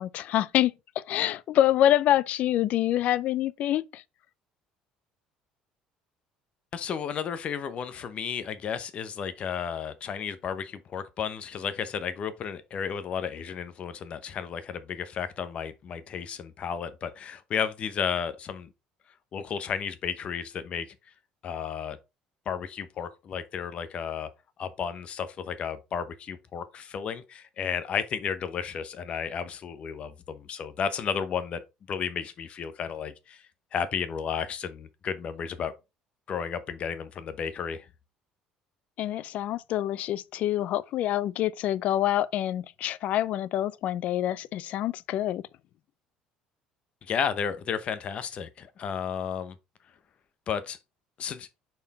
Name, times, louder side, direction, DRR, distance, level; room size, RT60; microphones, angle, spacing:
voice 1, 0.0-4.0 39.0-45.4, left 12 dB, 60° left, 0.4 m, -26 dB
voice 2, 6.7-18.7 19.3-20.9 21.4-22.0 22.5-24.3 24.6-31.6 31.9-33.4 33.7-35.7 36.3-37.9 47.0-49.5 50.5-50.8 51.2-51.5, left 7 dB, 45° left, 0.9 m, -33 dB
5.6 x 4.5 x 4.1 m
cardioid pair, 130°, 3 cm